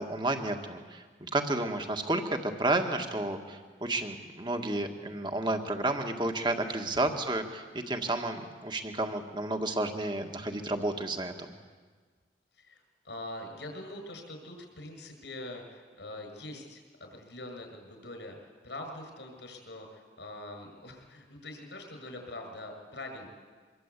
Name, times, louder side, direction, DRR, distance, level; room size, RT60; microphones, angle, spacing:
voice 1, 0.0-11.5, right 2 dB, 25° right, 5 dB, 1.8 m, -31 dB
voice 2, 12.5-23.3, left 1 dB, 85° left, 5 dB, 6.6 m, -43 dB
25.0 x 22.0 x 8.5 m, 1.5 s
head